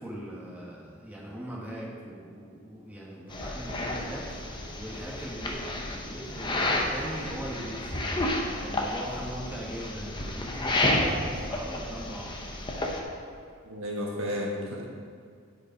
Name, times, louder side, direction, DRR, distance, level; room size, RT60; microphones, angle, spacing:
voice 1, 0.0-8.0 8.6-12.3, equal, 5° right, -5 dB, 1.2 m, -40 dB
sound 1, 3.3-13.0, left 1 dB, 20° left, 0.8 m, -31 dB
voice 2, 13.6-14.9, left 1 dB, 65° right, -2 dB, 1.5 m, -32 dB
9.9 x 5.2 x 5.0 m, 2.2 s
head